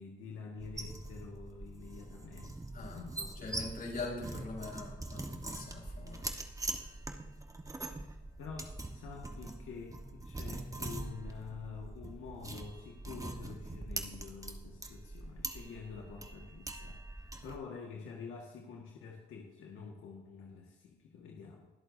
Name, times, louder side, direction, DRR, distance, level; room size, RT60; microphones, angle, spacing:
voice 1, 0.0-3.5 8.4-21.7, left 5 dB, 85° left, -1 dB, 1.7 m, -48 dB
sound 1, 0.6-17.6, right 2 dB, 15° right, 1.3 m, -43 dB
voice 2, 3.4-6.2, left 3 dB, 50° left, -1 dB, 4.6 m, -42 dB
23.0 x 8.1 x 2.7 m, 1.1 s
cardioid pair, 90°, 20 cm